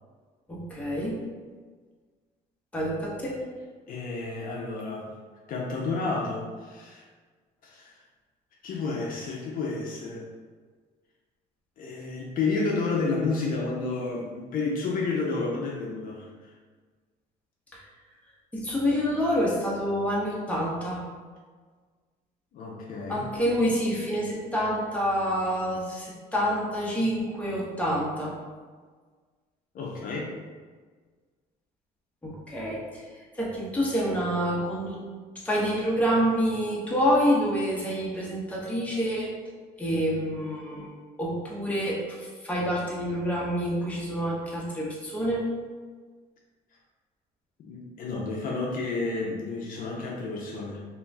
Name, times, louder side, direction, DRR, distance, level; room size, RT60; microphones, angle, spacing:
voice 1, 0.5-1.2 2.7-3.3 18.5-21.0 23.1-28.3 32.2-33.0 33.4-35.0 35.4-39.3 39.8-45.4, equal, 10° left, -5 dB, 0.8 m, -27 dB
voice 2, 3.9-5.1 5.5-7.0 7.6-8.0 8.6-10.3 11.8-16.5 22.5-23.2 29.7-30.3 47.6-50.8, left 3 dB, 55° left, -2 dB, 0.5 m, -31 dB
2.5 x 2.2 x 3.2 m, 1.5 s
cardioid pair, 110°, 17 cm